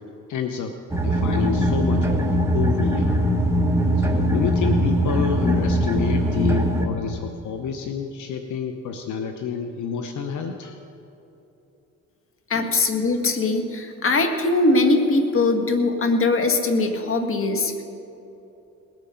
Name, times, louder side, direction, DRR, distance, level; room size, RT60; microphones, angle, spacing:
voice 1, 0.3-0.8 1.0-2.2 2.5-3.2 4.0-10.8 12.5-12.7, left 6 dB, 75° left, 6 dB, 1.0 m, -29 dB
sound 1, 0.9-6.8, equal, 10° right, 1.7 m, -21 dB
voice 2, 12.5-17.8, left 2 dB, 45° left, 5 dB, 1.8 m, -21 dB
20.0 x 9.1 x 5.7 m, 3.0 s
cardioid pair, 90°, 30 cm